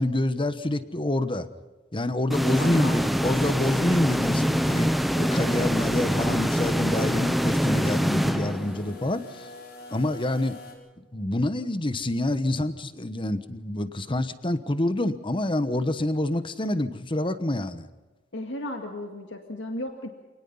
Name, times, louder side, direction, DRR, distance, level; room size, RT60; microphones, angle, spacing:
voice 1, 0.0-1.5 1.9-4.9 5.1-9.5 9.9-10.5 11.1-17.9, left 1 dB, 25° left, 12 dB, 1.1 m, -27 dB
sound 1, 2.3-9.1, equal, ahead, 0.8 m, -25 dB
voice 2, 2.4-3.1 18.3-20.1, left 1 dB, 75° left, 3 dB, 2.1 m, -34 dB
sound 2, 4.7-10.7, left 2 dB, 60° left, 6.4 m, -44 dB
27.5 x 19.5 x 5.6 m, 1.2 s
head